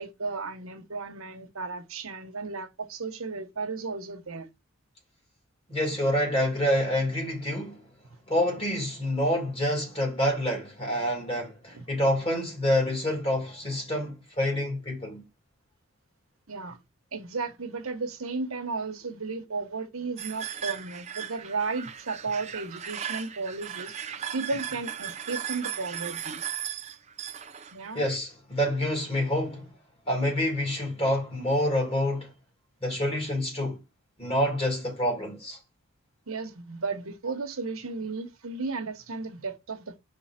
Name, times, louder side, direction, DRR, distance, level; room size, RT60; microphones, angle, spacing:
voice 1, 0.0-4.5 11.7-11.8 16.5-16.8 17.1-23.9 24.3-26.4 27.7-28.0 36.3-40.0, right 4 dB, 75° right, 1.2 m, -34 dB
voice 2, 5.7-7.8 8.3-15.2 27.9-29.8 30.1-32.3 32.8-33.8 34.2-35.6, equal, 25° left, 2.7 m, -27 dB
sound 1, 20.2-28.2, right 9 dB, 30° right, 0.5 m, -37 dB
5.1 x 3.9 x 5.8 m
head